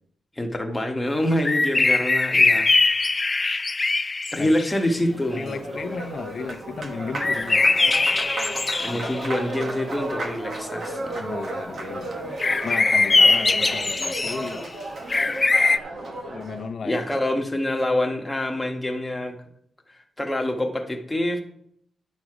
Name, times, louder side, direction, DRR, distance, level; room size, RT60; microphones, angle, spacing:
voice 1, 0.4-3.2 4.3-5.6 7.1-7.2 8.8-11.2 16.8-19.4 20.2-21.4, left 1 dB, 10° left, 3 dB, 1.4 m, -26 dB
sound 1, 1.4-4.8 7.2-9.2 12.4-14.6 15.1-15.8, left 3 dB, 25° left, 0.4 m, -21 dB
Applause, 4.9-16.7, right 2 dB, 50° right, 1.3 m, -33 dB
voice 2, 5.3-7.6 8.9-9.1 11.1-14.7 16.3-17.0, left 5 dB, 55° left, 8 dB, 0.8 m, -35 dB
10.5 x 6.3 x 5.0 m, 0.71 s
cardioid pair, 105°, 0 cm